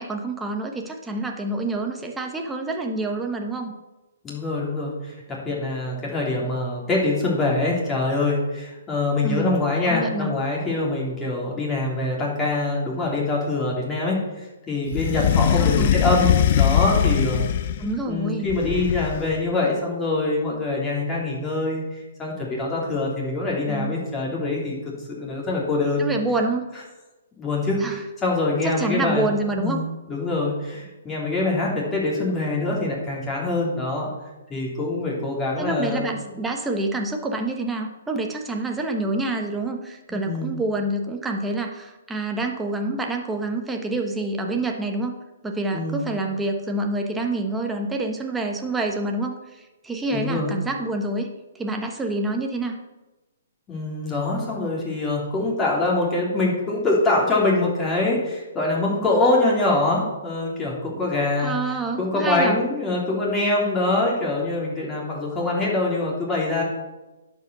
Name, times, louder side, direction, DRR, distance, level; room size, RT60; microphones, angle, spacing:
voice 1, 0.0-3.7 9.2-10.3 15.6-15.9 17.8-18.5 23.7-23.9 26.0-26.7 27.8-28.0 28.6-29.8 35.6-45.1 45.4-51.3 51.6-52.8 61.4-62.6, right 2 dB, 5° right, 2 dB, 1.1 m, -27 dB
voice 2, 4.2-14.2 14.7-17.4 18.1-24.7 25.2-26.1 27.4-27.8 28.2-29.3 29.6-34.1 34.5-36.3 40.1-40.5 45.7-46.1 50.1-50.6 53.7-61.5 62.0-66.6, left 2 dB, 15° left, -4 dB, 3.2 m, -24 dB
sound 1, 14.9-17.9 18.5-19.4, left 9 dB, 45° left, 0.7 m, -21 dB
11.0 x 5.3 x 6.9 m, 1.1 s
hypercardioid pair, 150°, 0 cm